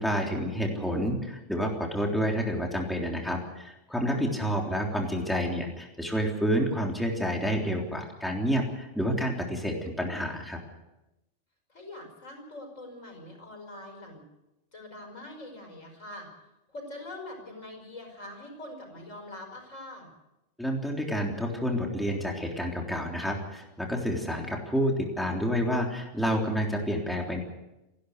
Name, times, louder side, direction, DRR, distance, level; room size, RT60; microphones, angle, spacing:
voice 1, 0.0-10.6 20.6-27.4, equal, ahead, 0 dB, 3.4 m, -29 dB
voice 2, 0.6-1.0 4.9-5.2 11.7-14.2 14.7-16.3 16.7-20.1, left 1 dB, 85° left, 3 dB, 5.8 m, -43 dB
29.5 x 12.0 x 8.1 m, 0.95 s
omnidirectional pair, 1.3 m